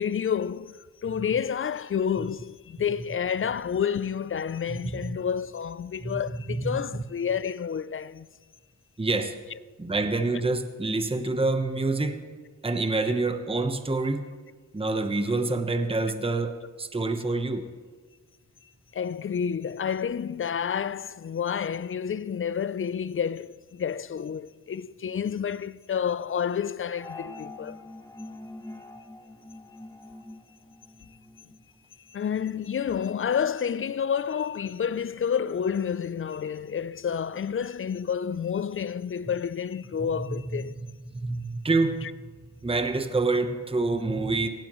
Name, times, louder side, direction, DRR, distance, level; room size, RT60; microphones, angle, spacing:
voice 1, 0.0-8.3 18.9-27.8 32.1-40.8, left 7 dB, 40° left, 0.4 m, -29 dB
voice 2, 4.7-5.2 6.0-6.2 6.5-6.8 9.0-9.4 9.8-12.2 12.6-14.2 14.7-17.7 40.0-42.0 42.6-44.5, right 3 dB, 15° right, 1.0 m, -27 dB
sound 1, 26.9-31.6, left 2 dB, 10° left, 1.1 m, -44 dB
18.0 x 15.0 x 3.1 m
cardioid pair, 60°, 34 cm